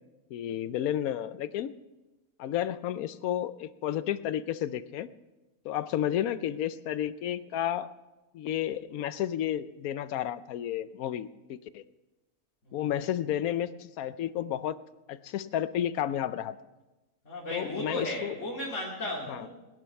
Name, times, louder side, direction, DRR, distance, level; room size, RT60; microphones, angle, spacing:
voice 1, 0.3-1.7 2.4-5.1 5.6-7.9 8.3-11.8 12.7-14.8 15.1-16.6 17.5-18.3 19.3-19.4, left 11 dB, 85° left, 15 dB, 1.1 m, -31 dB
voice 2, 17.2-19.5, left 1 dB, 55° left, -5 dB, 3.0 m, -35 dB
18.5 x 10.5 x 5.8 m, 1.1 s
omnidirectional pair, 1.5 m